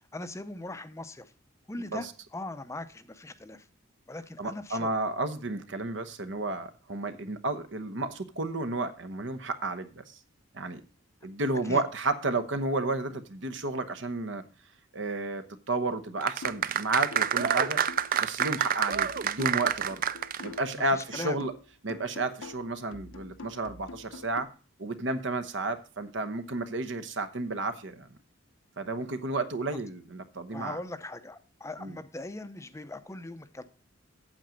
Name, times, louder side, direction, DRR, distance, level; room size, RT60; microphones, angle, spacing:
voice 1, 0.1-1.3 1.7-2.1 2.3-3.7 4.1-4.9 11.6-11.8 20.7-21.4 30.5-33.6, left 2 dB, 15° left, 0.6 m, -40 dB
voice 2, 4.4-10.2 10.5-10.8 11.2-14.4 14.9-17.8 18.2-20.0 20.4-21.5 21.8-24.5 24.8-28.2 28.8-30.8 31.8-32.0, right 2 dB, 65° right, 1.0 m, -32 dB
sound 1, 16.2-20.7 21.0-21.1, right 8 dB, 45° right, 0.4 m, -28 dB
sound 2, 16.4-16.7 17.1-20.8 21.1-24.4, left 3 dB, 85° left, 0.9 m, -46 dB
8.7 x 7.6 x 5.1 m
head